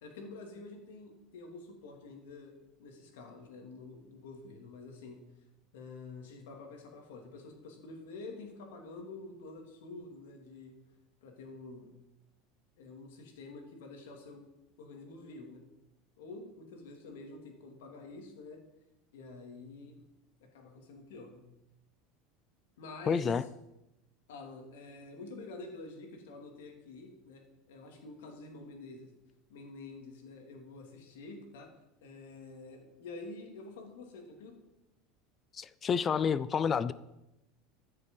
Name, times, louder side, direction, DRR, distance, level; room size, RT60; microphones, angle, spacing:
voice 1, 0.0-5.3 5.7-10.7 11.2-11.9 12.8-14.4 14.8-15.6 16.2-18.6 19.1-20.0 20.4-21.5 22.8-23.5 24.3-29.1 29.5-31.7 32.0-34.5, left 3 dB, 85° left, 2 dB, 2.8 m, -48 dB
voice 2, 23.1-23.4 35.5-36.9, left 6 dB, 30° left, 17 dB, 0.4 m, -29 dB
13.5 x 6.8 x 5.5 m, 0.92 s
supercardioid pair, 125°, 0 cm